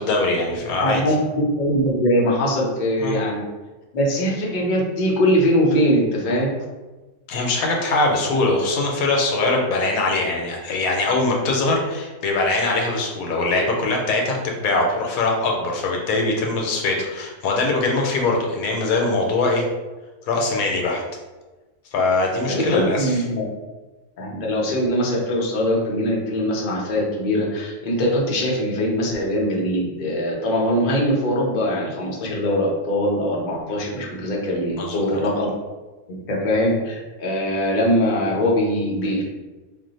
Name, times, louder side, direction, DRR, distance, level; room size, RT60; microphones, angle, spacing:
voice 1, 0.0-1.0 3.0-3.2 7.3-19.6 20.3-21.0 21.9-23.2 34.8-35.2, left 2 dB, 75° left, 0 dB, 1.0 m, -22 dB
voice 2, 0.8-3.4 3.9-6.5 22.5-23.4 24.2-35.5 36.1-39.2, equal, 55° left, -3 dB, 0.5 m, -22 dB
2.5 x 2.2 x 3.9 m, 1.2 s
omnidirectional pair, 1.5 m